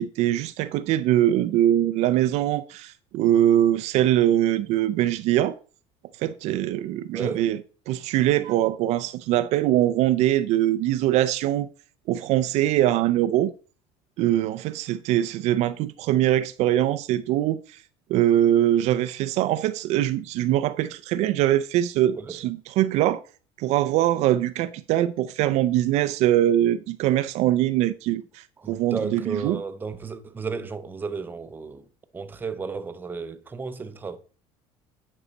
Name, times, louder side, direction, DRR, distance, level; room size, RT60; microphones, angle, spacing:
voice 1, 0.0-5.6 6.2-7.6 7.9-11.7 12.1-13.5 14.2-17.6 18.1-23.2 23.6-29.6, right 13 dB, 60° right, 0.5 m, -22 dB
voice 2, 7.1-7.5 22.1-22.4 28.6-31.8 32.1-34.2, right 5 dB, 15° right, 0.6 m, -33 dB
10.0 x 5.4 x 4.0 m
cardioid pair, 145°, 13 cm